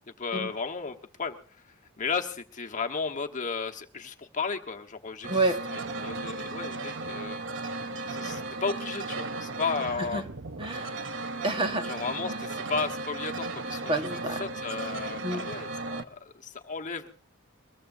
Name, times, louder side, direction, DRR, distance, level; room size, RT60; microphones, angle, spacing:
voice 1, 0.2-1.3 2.0-5.3 6.0-7.4 8.1-10.2 11.8-13.9 14.4-17.1, left 5 dB, 40° left, 3 dB, 1.2 m, -34 dB
sound 1, 5.2-16.0, right 3 dB, 60° right, 1.0 m, -35 dB
voice 2, 5.3-5.6 10.0-10.2 10.6-11.0 11.4-11.9 12.2-12.5 13.9-14.4 15.2-15.4, right 2 dB, 25° right, 6 dB, 1.4 m, -29 dB
23.0 x 22.0 x 2.6 m, 0.41 s
head